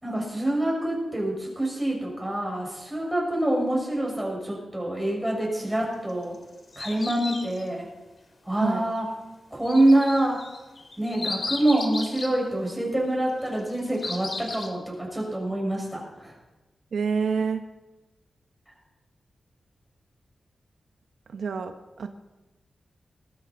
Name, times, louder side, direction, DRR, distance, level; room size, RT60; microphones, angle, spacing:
voice 1, 0.0-6.4 6.8-7.9 8.5-9.1 9.5-10.4 11.0-16.3, right 1 dB, 5° right, -2 dB, 5.9 m, -26 dB
sound 1, 6.1-7.7 9.6-12.3 13.5-14.7, left 3 dB, 45° left, 2.4 m, -35 dB
voice 2, 16.9-17.6 21.3-22.1, right 5 dB, 75° right, 7 dB, 0.9 m, -27 dB
19.5 x 13.0 x 4.3 m, 1.1 s
wide cardioid pair, 95°, 0 cm